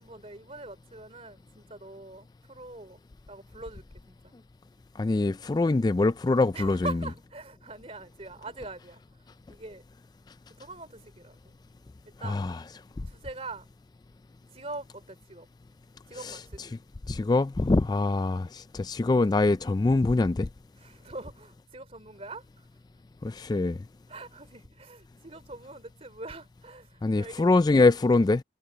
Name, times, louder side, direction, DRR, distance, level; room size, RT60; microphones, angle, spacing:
voice 1, 0.0-3.0 3.3-4.3 6.5-9.0 9.5-9.8 10.6-11.6 12.0-12.5 13.0-13.7 14.5-15.5 16.1-16.8 18.0-18.1 20.8-22.7 24.1-27.5, right 2 dB, 35° right, 3.4 m, -43 dB
voice 2, 5.0-6.9 12.2-12.6 16.2-16.4 17.1-20.5 23.2-23.8 27.0-28.4, left 3 dB, 20° left, 0.3 m, -24 dB
head